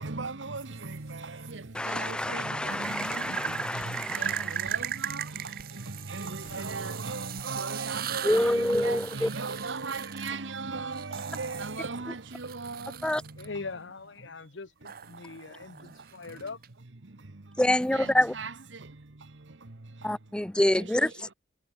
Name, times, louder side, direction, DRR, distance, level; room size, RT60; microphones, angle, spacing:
voice 1, 0.0-13.5 15.1-16.4 17.0-17.6 17.9-20.2 20.8-20.9, right 3 dB, 90° right, 1.3 m, -38 dB
sound 1, 0.6-1.5 2.8-13.5 14.9-16.7, right 10 dB, 55° right, 0.9 m, -38 dB
voice 2, 1.2-1.6 5.3-5.6 7.9-8.2 10.2-10.6 13.4-16.6, left 4 dB, 85° left, 1.0 m, -43 dB
Crackle, 1.7-2.8 3.4-4.0 4.6-5.0 5.4-5.9 6.2-8.1 8.4-8.6, left 2 dB, 65° left, 2.5 m, -54 dB
voice 3, 1.7-4.6 8.2-9.3 13.0-13.2 17.6-18.4 20.0-21.3, left 1 dB, 5° left, 0.4 m, -27 dB
head